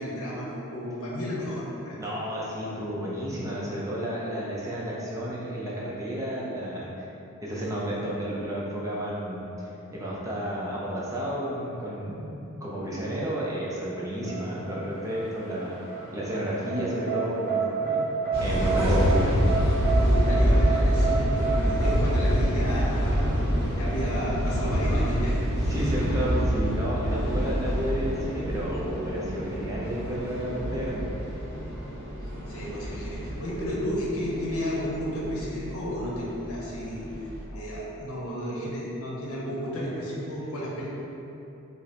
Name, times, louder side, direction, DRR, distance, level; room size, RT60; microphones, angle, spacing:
voice 1, 0.0-2.1 7.7-7.9 19.9-23.2 23.7-25.4 25.7-26.3 32.4-37.0 37.5-40.9, equal, 70° left, -5 dB, 0.8 m, -32 dB
voice 2, 2.0-7.1 7.4-15.8 16.1-18.1 18.4-19.3 25.7-31.1, right 1 dB, 15° right, -6 dB, 0.4 m, -32 dB
sound 1, 14.2-21.9, right 5 dB, 15° left, 1.2 m, -30 dB
sound 2, 18.3-37.4, equal, 45° right, 0.8 m, -26 dB
5.0 x 2.0 x 2.8 m, 3.0 s
head